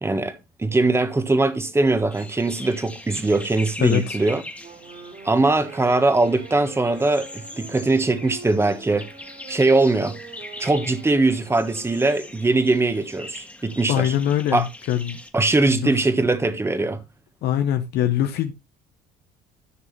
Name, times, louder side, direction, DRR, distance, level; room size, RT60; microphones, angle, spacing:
voice 1, 0.0-4.4 5.2-9.1 9.5-10.2 10.6-14.1 14.5-14.7 15.3-17.0, right 2 dB, 15° right, 1.4 m, -21 dB
sound 1, 2.1-15.3, left 1 dB, 10° left, 1.8 m, -41 dB
voice 2, 3.8-4.2 13.9-15.2 15.7-16.0 17.4-18.5, left 11 dB, 75° left, 1.1 m, -23 dB
Wind instrument woodwind instrument, 4.6-12.4, right 5 dB, 50° right, 3.2 m, -43 dB
14.0 x 6.4 x 3.3 m
cardioid pair, 110°, 17 cm